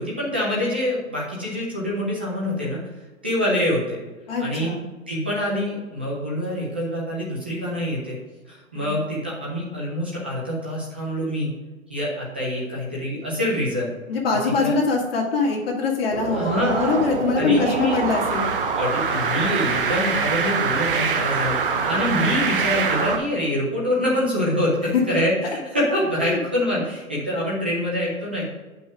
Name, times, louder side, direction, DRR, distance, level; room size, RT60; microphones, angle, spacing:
voice 1, 0.0-2.8 3.2-4.1 4.4-4.7 5.1-8.2 8.5-11.6 11.9-13.9 14.4-14.7 16.3-16.9 17.4-18.0 18.8-28.4, left 1 dB, 10° right, -5 dB, 0.5 m, -25 dB
voice 2, 4.3-4.8 8.7-9.0 14.1-18.5 24.9-25.0 26.2-26.4, left 4 dB, 45° left, 0 dB, 2.1 m, -23 dB
sound 1, 16.1-23.2, right 5 dB, 40° right, 0.8 m, -24 dB
7.9 x 5.4 x 4.8 m, 1.2 s
hypercardioid pair, 165°, 41 cm